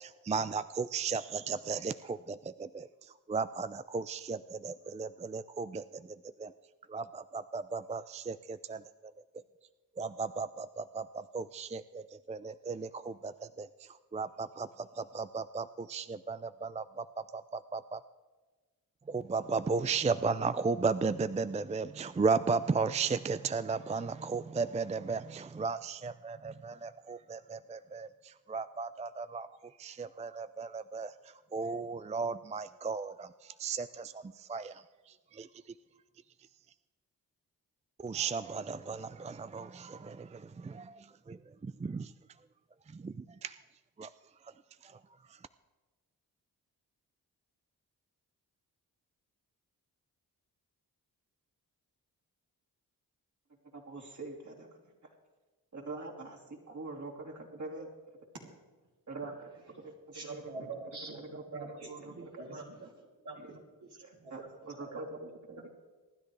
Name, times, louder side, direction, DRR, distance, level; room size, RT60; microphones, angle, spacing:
voice 1, 0.0-6.5 6.9-9.1 10.0-18.0 19.1-35.5 38.0-42.1 42.9-43.5 44.0-44.1 44.8-45.0, right 4 dB, 20° right, 13 dB, 0.4 m, -35 dB
voice 2, 53.7-55.1 55.7-57.9 58.4-58.5 59.1-62.4 63.4-63.5 64.0-65.7, right 2 dB, 45° right, -1 dB, 3.2 m, -45 dB
voice 3, 60.1-61.2 61.5-62.9 63.2-63.6 64.2-64.5 64.8-64.9, right 3 dB, 80° right, -2 dB, 2.9 m, -44 dB
24.0 x 10.5 x 3.3 m, 1.3 s
supercardioid pair, 40°, 40 cm